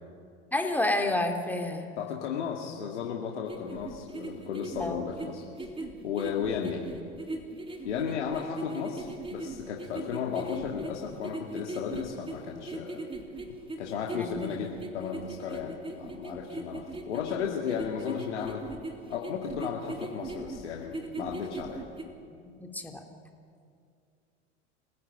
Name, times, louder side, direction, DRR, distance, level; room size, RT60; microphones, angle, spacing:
voice 1, 0.5-1.9 4.8-5.0 14.1-14.7 22.6-23.0, left 1 dB, 5° left, 3 dB, 3.2 m, -30 dB
voice 2, 2.0-5.4 6.0-6.8 7.8-13.0 13.8-18.6 19.1-21.8, left 7 dB, 80° left, 0 dB, 2.4 m, -34 dB
sound 1, 3.5-22.0, right 2 dB, 15° right, 3.4 m, -39 dB
24.5 x 16.0 x 10.0 m, 2.4 s
hypercardioid pair, 90°, 35 cm